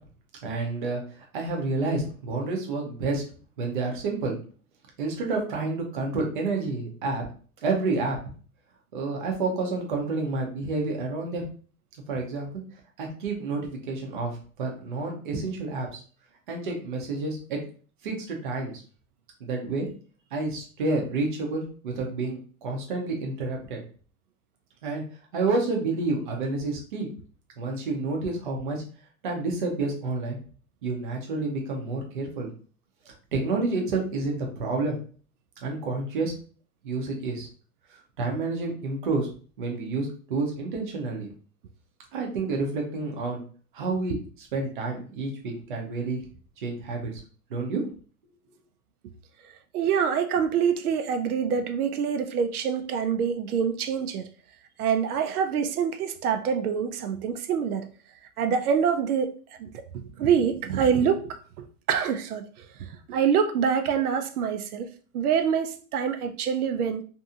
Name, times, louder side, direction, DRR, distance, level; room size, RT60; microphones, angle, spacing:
voice 1, 0.4-3.2 3.6-4.3 5.0-7.2 7.6-8.2 8.9-11.4 12.1-12.6 13.0-16.0 16.5-17.6 18.0-18.7 19.4-19.9 20.3-23.8 24.8-25.0 25.3-27.1 27.6-28.8 29.2-30.4 30.8-32.5 33.1-35.0 35.6-36.3 36.8-37.5 38.2-39.3 39.6-41.3 42.1-43.4 43.7-46.2 46.6-47.2 47.5-47.8, right 3 dB, 35° right, 0.6 m, -29 dB
voice 2, 49.7-54.3 54.8-57.9 58.4-67.0, right 7 dB, 85° right, 0.6 m, -26 dB
2.7 x 2.6 x 2.4 m
hypercardioid pair, 170°, 44 cm